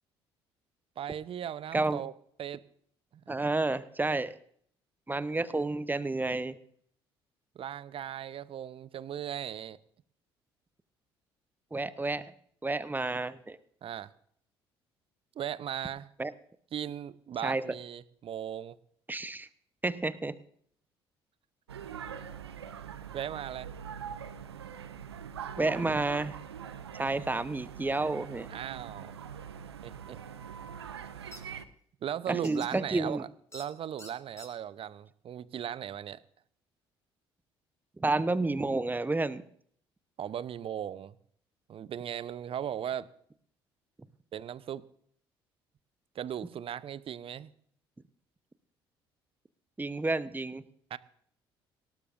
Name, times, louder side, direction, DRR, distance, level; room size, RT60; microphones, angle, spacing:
voice 1, 1.0-2.1 2.4-2.6 3.3-3.4 7.5-9.8 13.8-14.1 15.4-16.1 16.7-18.8 23.1-23.7 28.5-29.1 29.8-30.2 32.0-33.3 33.5-36.2 40.2-41.2 41.7-43.1 44.3-44.8 46.1-47.5 50.9-51.0, right 10 dB, 45° right, 18 dB, 0.8 m, -37 dB
voice 2, 3.3-4.3 5.1-6.6 11.7-12.2 12.6-13.6 16.2-16.3 17.4-17.7 19.1-19.5 19.8-20.4 25.6-26.4 26.9-28.5 32.3-33.2 38.0-39.4 49.8-50.6, right 2 dB, 15° right, 15 dB, 0.9 m, -30 dB
sound 1, 21.7-31.6, right 8 dB, 85° right, 0.6 m, -43 dB
sound 2, 31.3-31.4 32.4-32.7 33.5-33.7 34.0-34.5, left 1 dB, 20° left, 5.3 m, -47 dB
19.0 x 18.0 x 2.6 m, 0.62 s
figure-of-eight pair, 50°, 13 cm